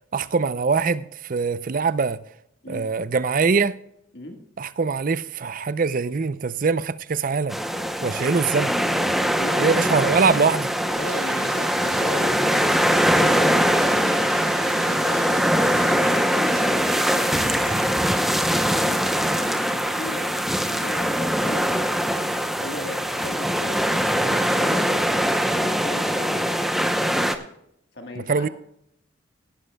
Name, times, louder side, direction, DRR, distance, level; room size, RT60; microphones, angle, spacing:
voice 1, 0.1-2.2 2.7-3.8 4.6-7.6 8.0-8.7 9.6-10.7 28.2-28.5, right 4 dB, 45° right, 0.5 m, -23 dB
sound 1, 7.5-27.4, equal, ahead, 0.7 m, -22 dB
voice 2, 9.3-10.1 10.9-14.2 14.6-18.2 18.5-19.0 19.3-20.3 20.6-22.1 22.6-25.0 25.5-26.4 27.9-28.5, left 1 dB, 55° left, 1.6 m, -37 dB
sound 2, 11.0-17.8, right 6 dB, 70° right, 2.9 m, -40 dB
17.5 x 11.5 x 2.3 m
head